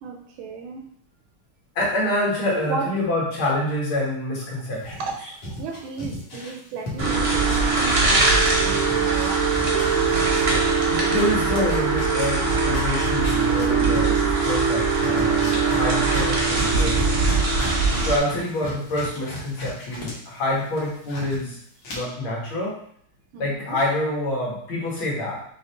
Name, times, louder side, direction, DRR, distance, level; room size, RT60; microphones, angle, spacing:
voice 1, 0.0-0.9 2.5-2.9 4.8-9.3 21.9-22.0 23.3-23.8, right 4 dB, 85° right, 2 dB, 1.5 m, -34 dB
voice 2, 1.8-5.3 10.5-17.4 18.0-21.6 21.9-22.8 23.4-25.4, left 1 dB, 80° left, -4 dB, 2.2 m, -27 dB
sound 1, 4.8-8.4 8.7-20.1 20.5-21.4 21.8-21.9, left 1 dB, 65° left, 2.0 m, -36 dB
sound 2, 7.0-18.2, right 4 dB, 45° right, 0.8 m, -21 dB
4.9 x 3.4 x 2.9 m, 0.65 s
omnidirectional pair, 2.3 m